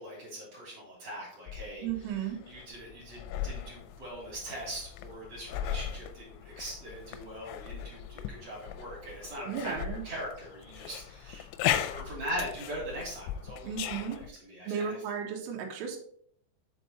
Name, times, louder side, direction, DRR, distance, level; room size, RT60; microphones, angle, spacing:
voice 1, 0.0-11.5 11.8-15.0, equal, 35° right, -5 dB, 3.5 m, -41 dB
sound 1, 1.5-14.3, left 10 dB, 90° left, 2.9 m, -38 dB
voice 2, 1.8-2.4 9.5-10.0 13.6-14.2 14.6-16.0, right 7 dB, 80° right, 1 dB, 3.3 m, -34 dB
7.0 x 4.7 x 4.2 m, 0.63 s
omnidirectional pair, 5.2 m